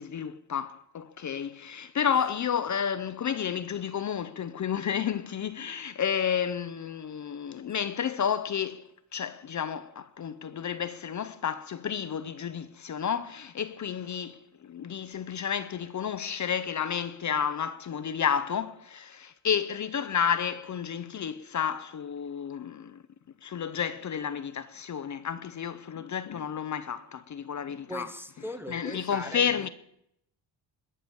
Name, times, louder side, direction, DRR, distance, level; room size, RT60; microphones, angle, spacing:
voice 1, 0.0-8.9 9.1-23.0 23.4-28.1 28.7-29.7, left 8 dB, 40° left, 0.7 m, -31 dB
voice 2, 27.9-29.7, equal, 5° right, 0.8 m, -40 dB
20.5 x 6.9 x 8.6 m
cardioid pair, 140°, 46 cm